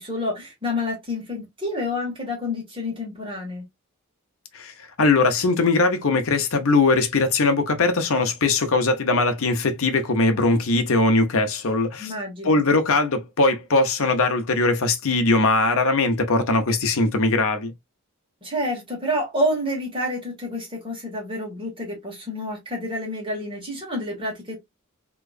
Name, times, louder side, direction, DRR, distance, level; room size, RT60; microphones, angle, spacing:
voice 1, 0.0-3.6 12.0-12.6 18.4-24.6, left 1 dB, 25° right, 1.8 m, -28 dB
voice 2, 4.5-12.1 12.4-17.7, left 3 dB, 65° left, 0.8 m, -20 dB
3.6 x 3.0 x 2.4 m
head